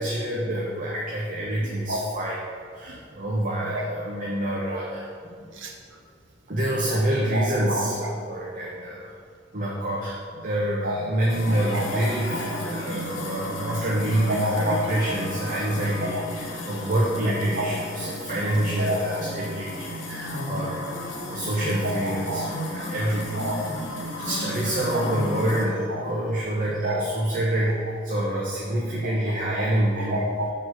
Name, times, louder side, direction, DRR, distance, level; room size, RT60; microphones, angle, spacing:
voice 1, 0.0-2.4 2.7-5.5 6.5-9.1 9.5-21.0 21.3-23.4 24.2-27.7 28.0-30.2, right 1 dB, 45° right, -4 dB, 1.0 m, -27 dB
voice 2, 1.9-2.2 3.7-3.8 5.6-5.7 6.9-7.0 7.3-8.1 10.8-11.0 11.5-11.8 12.5-12.6 14.3-14.8 16.0-16.2 17.5-17.7 18.8-19.2 21.8-22.0 22.3-22.5 23.3-24.1 24.9-25.0 25.9-26.0 26.8-27.1 29.0-29.1 29.6-29.7 30.1-30.5, right 1 dB, 75° right, 1 dB, 1.1 m, -29 dB
sound 1, 11.3-25.7, left 1 dB, 90° left, 1.2 m, -33 dB
6.2 x 4.6 x 6.4 m, 2.1 s
head